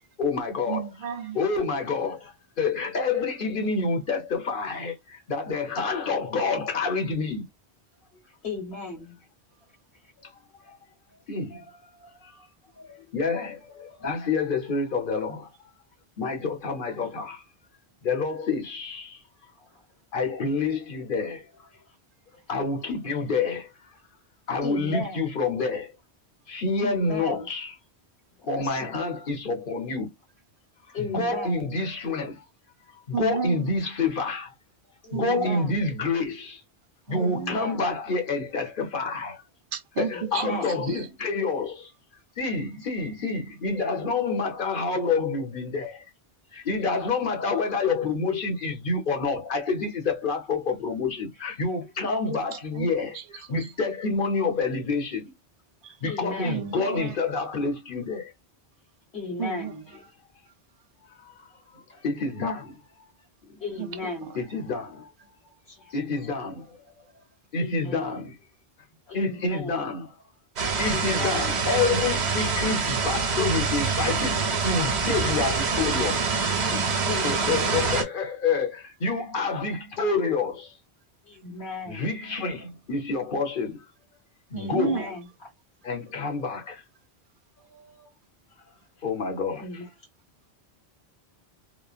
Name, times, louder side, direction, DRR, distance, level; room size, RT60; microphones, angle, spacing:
voice 1, 0.0-0.9 1.3-7.5 10.2-10.3 10.7-10.8 11.3-12.5 12.8-15.5 16.2-17.4 18.0-19.2 20.1-21.5 22.5-23.7 24.5-25.9 26.5-27.7 28.5-30.1 30.9-32.5 33.1-34.5 35.1-36.6 37.1-39.4 40.0-41.9 42.4-46.0 46.5-55.3 56.0-58.3 61.1-62.8 63.5-63.6 64.3-65.1 65.9-66.8 67.5-68.3 69.1-70.1 70.8-76.2 76.7-80.8 81.9-83.8 84.5-85.1 85.8-86.8 87.6-88.1 89.0-89.6, left 4 dB, 55° left, 1.0 m, -28 dB
voice 2, 0.7-1.4 33.1-33.7 35.1-35.6 37.1-37.6 39.7-41.1 52.7-53.2 53.6-53.7 55.8-56.0 56.4-57.1 59.4-59.7 63.8-64.3 84.5-85.0, right 7 dB, 60° right, 0.7 m, -32 dB
voice 3, 8.2-9.2 10.0-10.1 19.6-19.8 21.9-22.0 22.3-22.4 24.6-25.3 26.8-27.5 28.4-29.0 30.9-31.7 35.0-35.9 37.1-37.8 40.0-40.7 52.2-52.4 56.0-56.7 59.1-59.8 63.6-64.3 65.7-66.0 67.5-68.2 69.1-69.9 70.8-71.6 72.3-72.5 77.0-77.9 81.2-82.1 84.6-85.5 89.6-89.9, left 3 dB, 75° left, 1.4 m, -36 dB
sound 1, 70.6-78.0, right 4 dB, 85° right, 1.1 m, -25 dB
3.0 x 2.1 x 2.4 m
omnidirectional pair, 1.1 m